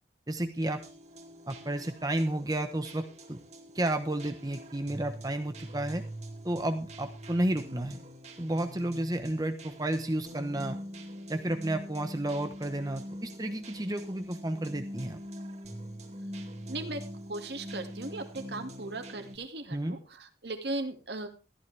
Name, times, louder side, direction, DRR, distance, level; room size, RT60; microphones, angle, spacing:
voice 1, 0.3-0.8 1.5-3.0 3.3-3.4 3.7-6.0 6.4-8.0 8.4-10.8 11.3-15.2 19.7-20.0, right 1 dB, 20° right, 7 dB, 1.0 m, -31 dB
sound 1, 0.6-19.4, equal, 40° right, 2.6 m, -44 dB
voice 2, 16.7-17.0 17.3-21.3, right 2 dB, 70° right, 5 dB, 2.2 m, -37 dB
14.0 x 12.5 x 3.4 m, 0.32 s
head